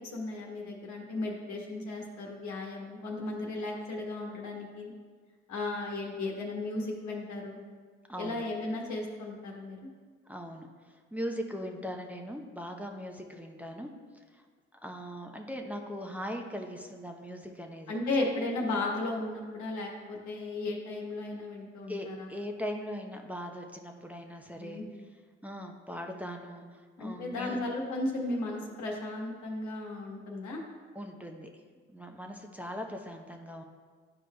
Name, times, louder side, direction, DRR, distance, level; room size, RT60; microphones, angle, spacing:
voice 1, 0.1-4.9 5.5-7.6 8.2-9.8 17.9-22.3 24.6-24.8 27.0-30.6, left 2 dB, 70° left, -1 dB, 1.3 m, -35 dB
voice 2, 8.1-8.4 10.3-14.4 14.8-18.0 21.9-24.8 25.4-27.6 30.9-31.5 31.9-33.6, equal, 5° right, 2 dB, 0.8 m, -40 dB
10.5 x 4.8 x 2.3 m, 1.5 s
hypercardioid pair, 45°, 30 cm